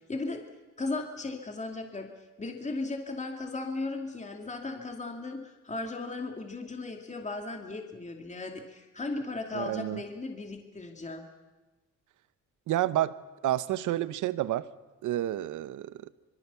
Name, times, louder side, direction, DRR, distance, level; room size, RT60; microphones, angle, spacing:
voice 1, 0.1-0.4 0.8-2.1 2.4-11.3, left 3 dB, 25° left, 3 dB, 2.6 m, -36 dB
voice 2, 9.5-10.0 12.7-13.1 13.4-14.7 15.0-15.9, right 13 dB, 80° right, 15 dB, 1.0 m, -29 dB
25.0 x 23.0 x 7.0 m, 1.2 s
cardioid pair, 90°, 30 cm